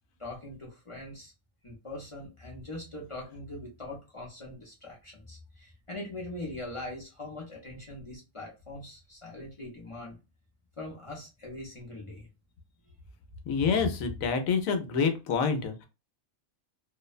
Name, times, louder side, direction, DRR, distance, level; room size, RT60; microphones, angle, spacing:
voice 1, 0.2-1.3 1.6-10.2 10.8-12.3, left 1 dB, 40° left, -2 dB, 0.5 m, -42 dB
voice 2, 13.5-15.9, left 5 dB, 80° left, 7 dB, 1.0 m, -27 dB
2.6 x 2.0 x 2.4 m, 0.28 s
omnidirectional pair, 1.4 m